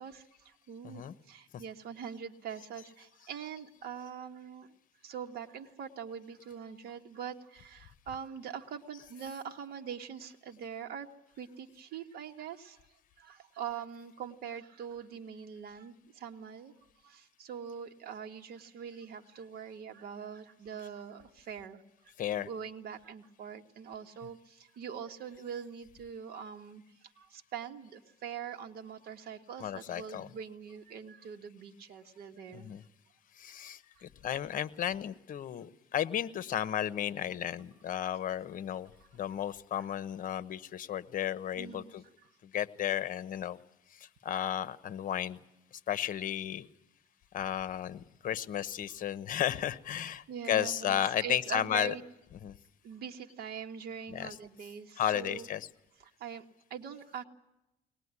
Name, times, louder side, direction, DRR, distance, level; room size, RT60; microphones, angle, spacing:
voice 1, 0.0-4.7 5.0-11.1 11.4-12.8 13.2-16.7 17.0-32.7 33.6-34.1 37.9-38.0 39.0-39.1 39.7-39.9 41.6-41.9 42.2-42.3 50.3-52.0 52.8-55.5 56.0-56.4 56.7-57.2, right 7 dB, 65° right, 4 dB, 1.8 m, -43 dB
voice 2, 22.2-22.5 29.6-30.3 32.5-32.8 33.4-42.0 42.4-43.6 43.9-45.4 45.9-46.7 47.3-52.0 52.3-52.6 54.1-54.4 55.0-55.7, left 10 dB, 50° left, 15 dB, 1.1 m, -34 dB
23.0 x 19.5 x 9.8 m, 0.93 s
cardioid pair, 110°, 17 cm